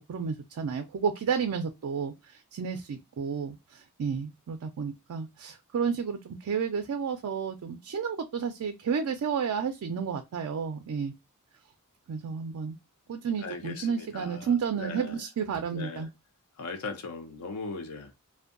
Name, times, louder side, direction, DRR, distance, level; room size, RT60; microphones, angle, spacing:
voice 1, 0.1-11.1 12.1-12.8 13.1-16.1, right 6 dB, 70° right, 0.3 m, -31 dB
voice 2, 13.4-15.2 15.7-16.1 16.6-18.1, left 3 dB, 80° left, 0.5 m, -39 dB
2.6 x 2.2 x 2.4 m
head